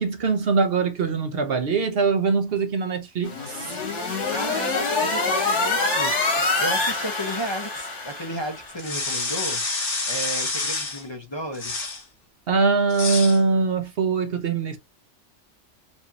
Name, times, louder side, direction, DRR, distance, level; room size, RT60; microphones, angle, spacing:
voice 1, 0.0-3.8 12.5-14.8, right 4 dB, 60° right, 0.9 m, -22 dB
sound 1, 3.2-8.8, left 3 dB, 80° left, 1.7 m, -25 dB
voice 2, 4.3-9.6 10.1-11.9, equal, 25° left, 1.0 m, -33 dB
sound 2, 8.8-11.0 11.5-12.0 12.9-13.4, left 3 dB, 50° left, 1.4 m, -28 dB
4.4 x 2.7 x 2.8 m
omnidirectional pair, 1.2 m